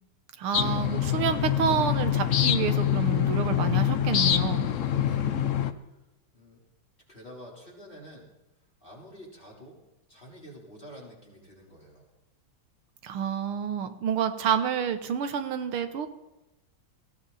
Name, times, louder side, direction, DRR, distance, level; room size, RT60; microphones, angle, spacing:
voice 1, 0.4-4.7 13.0-16.1, right 8 dB, 85° right, 8 dB, 2.0 m, -29 dB
sound 1, 0.5-5.7, left 10 dB, 70° left, 0.7 m, -25 dB
voice 2, 5.0-5.4 6.3-6.6 7.1-8.3 8.8-9.8 10.1-12.1, equal, 25° left, -3 dB, 4.3 m, -48 dB
18.5 x 16.5 x 4.2 m, 0.98 s
omnidirectional pair, 2.3 m